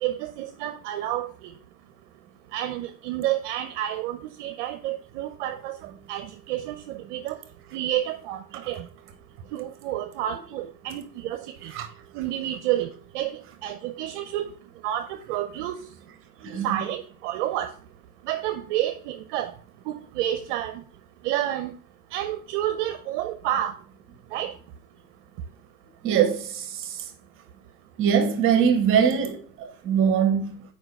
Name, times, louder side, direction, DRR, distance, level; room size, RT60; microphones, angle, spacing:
voice 1, 0.0-1.5 2.5-7.4 7.7-8.9 9.5-11.7 12.1-14.5 14.8-15.8 16.6-17.7 18.2-19.5 19.9-20.8 21.2-21.7 22.1-23.8 24.3-24.5, right 12 dB, 50° right, 0.6 m, -30 dB
voice 2, 16.4-16.8 26.0-27.0 28.0-30.6, right 7 dB, 25° right, 1.0 m, -22 dB
4.8 x 4.6 x 5.7 m
supercardioid pair, 145°, 46 cm